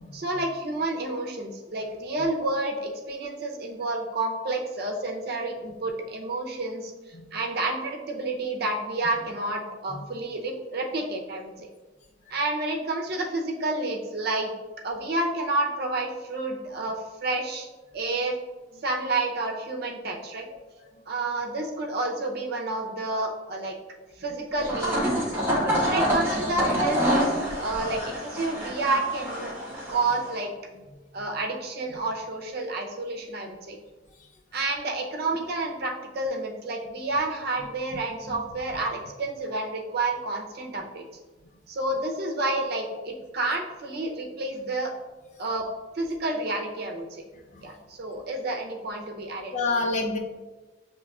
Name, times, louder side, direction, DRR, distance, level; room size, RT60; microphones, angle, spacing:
voice 1, 0.1-6.9 7.3-11.5 12.3-14.5 14.8-17.7 17.9-18.4 18.8-20.5 21.1-23.7 24.2-25.4 25.8-29.5 29.9-30.5 31.1-33.8 34.5-41.0 41.7-44.9 45.4-45.7 45.9-47.2 47.6-49.7, right 2 dB, 60° right, 2 dB, 0.6 m, -30 dB
sound 1, 24.6-30.4, equal, 10° right, 1.3 m, -27 dB
voice 2, 49.5-50.2, left 3 dB, 40° left, 1 dB, 0.6 m, -28 dB
7.2 x 3.0 x 2.3 m, 1.2 s
head